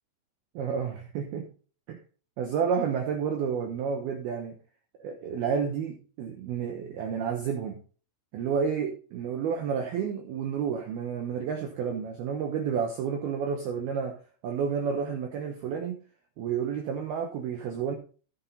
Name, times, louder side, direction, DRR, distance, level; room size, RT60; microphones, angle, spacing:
voice 1, 0.5-1.5 1.9-2.0 2.4-4.6 5.0-7.8 8.3-14.2 14.4-16.0 16.4-18.0, right 6 dB, 75° right, 3 dB, 2.3 m, -30 dB
14.5 x 5.8 x 4.1 m, 0.38 s
omnidirectional pair, 5.9 m